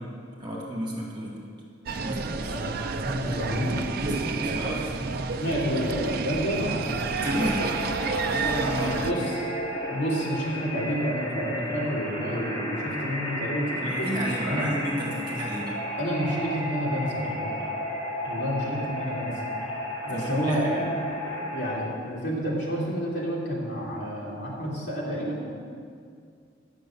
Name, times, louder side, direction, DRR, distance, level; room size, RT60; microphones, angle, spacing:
voice 1, 0.4-1.4 1.9-2.6 3.0-3.3 4.0-5.1 7.2-7.7 8.3-9.1 13.8-15.8 20.1-20.9, equal, 25° right, -4 dB, 2.2 m, -31 dB
sound 1, 1.9-9.1, right 4 dB, 50° right, 0.5 m, -30 dB
voice 2, 3.2-3.8 5.4-7.7 8.7-9.5 9.9-14.6 16.0-17.5 18.2-19.3 20.0-20.9 21.5-25.4, equal, 65° left, -5 dB, 2.9 m, -29 dB
sound 2, 7.2-21.7, equal, 25° left, 2.8 m, -33 dB
10.5 x 6.5 x 7.1 m, 2.2 s
head